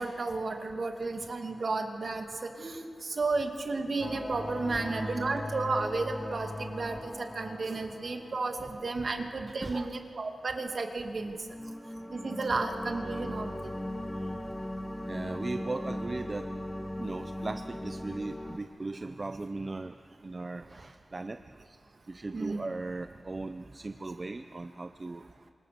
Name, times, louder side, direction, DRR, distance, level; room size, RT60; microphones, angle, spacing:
voice 1, 0.0-11.4 12.1-13.7 22.3-22.6, right 3 dB, 50° right, 4 dB, 2.4 m, -33 dB
sound 1, 4.0-9.3 11.3-18.6, left 1 dB, 10° left, 1.4 m, -38 dB
voice 2, 15.1-16.5 17.0-21.8 22.1-25.2, right 3 dB, 30° right, 9 dB, 0.7 m, -38 dB
28.0 x 26.0 x 6.8 m, 2.1 s
wide cardioid pair, 125°, 0 cm